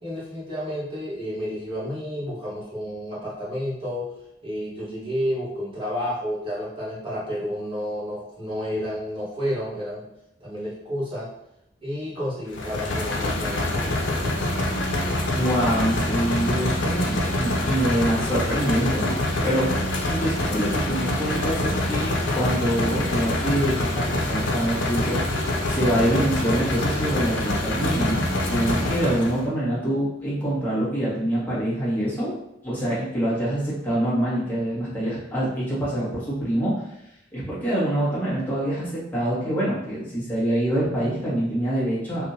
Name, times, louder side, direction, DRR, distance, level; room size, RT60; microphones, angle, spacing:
voice 1, 0.0-4.1 4.4-10.1 10.4-11.3 11.8-13.8, equal, 30° right, -8 dB, 1.3 m, -30 dB
sound 1, 12.5-29.4, left 1 dB, 80° left, 0.6 m, -25 dB
voice 2, 15.3-19.2 19.4-25.2 25.7-28.2 28.5-32.3 32.6-36.7 37.3-42.2, right 1 dB, 10° left, -10 dB, 1.3 m, -25 dB
3.5 x 2.5 x 2.7 m, 0.83 s
head